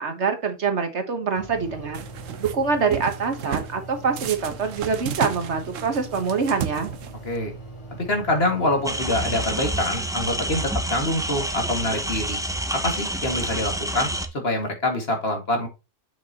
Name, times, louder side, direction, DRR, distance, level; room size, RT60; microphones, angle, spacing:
voice 1, 0.0-2.1 2.4-6.9, right 5 dB, 60° right, 7 dB, 1.5 m, -25 dB
sound 1, 1.4-9.4, right 2 dB, 25° left, 2.5 m, -41 dB
sound 2, 1.9-2.6 2.9-3.7 4.2-7.4, right 9 dB, 80° right, 1.1 m, -33 dB
voice 2, 8.1-12.4 12.7-15.7, left 1 dB, 50° left, 3 dB, 2.3 m, -25 dB
sound 3, 8.8-14.3, right 1 dB, 5° right, 0.7 m, -28 dB
8.1 x 6.5 x 2.9 m, 0.26 s
omnidirectional pair, 1.3 m